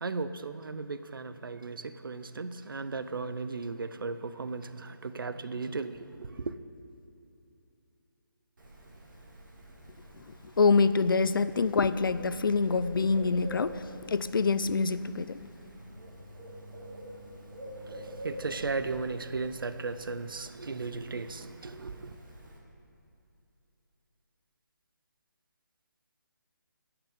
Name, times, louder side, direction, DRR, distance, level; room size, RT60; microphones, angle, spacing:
voice 1, 0.0-6.5 18.2-22.0, right 4 dB, 85° right, 12 dB, 0.6 m, -36 dB
Bird, 8.6-22.6, equal, 65° right, 2.3 m, -47 dB
voice 2, 10.6-15.4, left 4 dB, 80° left, 14 dB, 0.5 m, -26 dB
10.0 x 5.9 x 8.3 m, 2.8 s
hypercardioid pair, 170°, 11 cm